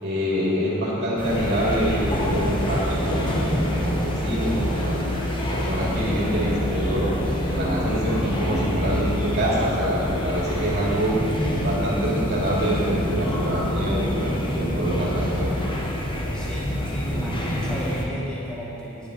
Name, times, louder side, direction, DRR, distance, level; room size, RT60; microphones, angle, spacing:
voice 1, 0.0-5.0 5.5-7.1 7.5-11.2 11.6-15.6, right 1 dB, 50° right, -6 dB, 2.5 m, -26 dB
sound 1, 1.2-18.1, left 1 dB, 20° left, 1.0 m, -26 dB
voice 2, 16.3-19.1, equal, 5° left, -6 dB, 1.7 m, -33 dB
10.0 x 7.2 x 5.1 m, 2.9 s
head